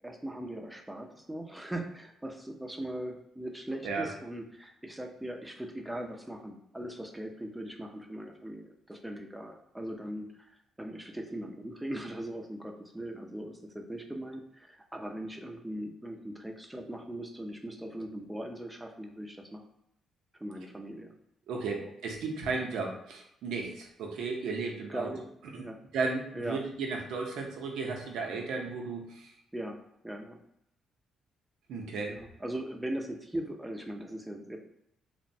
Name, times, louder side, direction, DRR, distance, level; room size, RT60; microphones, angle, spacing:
voice 1, 0.0-19.6 20.4-21.1 21.8-21.9 24.9-25.2 25.6-25.8 26.3-26.6 29.5-29.8 30.0-30.4 32.1-34.6, right 1 dB, 10° right, 3 dB, 0.4 m, -39 dB
voice 2, 21.5-25.1 25.5-25.6 25.9-29.3 31.7-32.2, right 4 dB, 80° right, 1 dB, 0.6 m, -34 dB
2.9 x 2.0 x 2.6 m, 0.75 s
cardioid pair, 90°, 0 cm